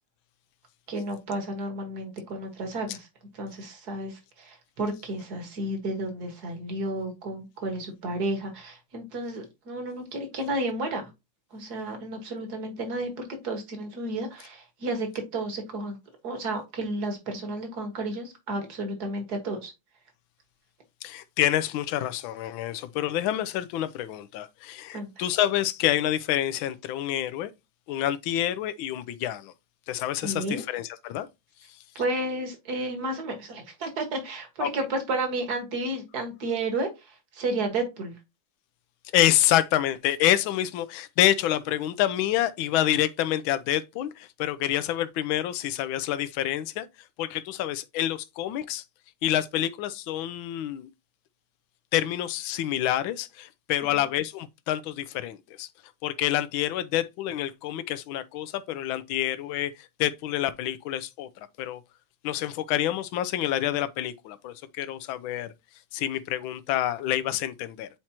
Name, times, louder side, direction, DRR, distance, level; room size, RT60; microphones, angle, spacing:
voice 1, 0.9-3.1 3.3-11.1 11.5-16.0 16.2-19.7 24.9-25.1 30.2-30.6 32.0-38.1, right 2 dB, 50° right, 2.1 m, -32 dB
voice 2, 21.0-27.5 27.9-29.5 29.9-31.3 34.6-34.7 39.1-46.9 47.2-48.8 49.2-50.9 51.9-55.7 56.0-61.3 61.6-61.8 62.2-65.5 65.9-67.9, left 13 dB, 75° left, 1.4 m, -27 dB
8.6 x 4.5 x 2.9 m
omnidirectional pair, 2.3 m